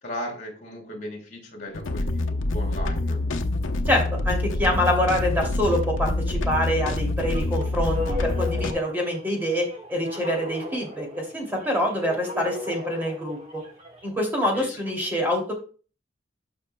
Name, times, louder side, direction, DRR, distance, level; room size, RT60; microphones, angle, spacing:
voice 1, 0.0-3.2 14.5-14.8, left 1 dB, 40° left, 1 dB, 3.6 m, -37 dB
sound 1, 1.7-8.7, left 2 dB, 85° left, 0.8 m, -26 dB
voice 2, 3.9-13.6 14.0-15.5, left 1 dB, 10° right, 0 dB, 2.6 m, -26 dB
sound 2, 7.2-14.1, left 2 dB, 35° right, 1.6 m, -36 dB
12.0 x 5.7 x 2.2 m, 0.38 s
head